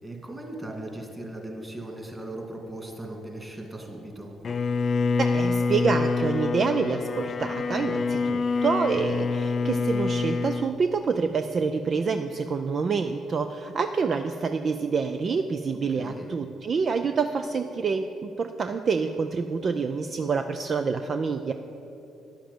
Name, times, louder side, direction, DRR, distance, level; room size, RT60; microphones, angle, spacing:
voice 1, 0.0-4.3 15.9-16.3, right 1 dB, 20° right, 1 dB, 2.6 m, -38 dB
Bowed string instrument, 4.4-10.7, left 4 dB, 50° left, 0.4 m, -26 dB
voice 2, 5.2-21.5, right 5 dB, 50° right, 8 dB, 0.5 m, -27 dB
10.5 x 7.2 x 7.6 m, 2.9 s
supercardioid pair, 60°, 0 cm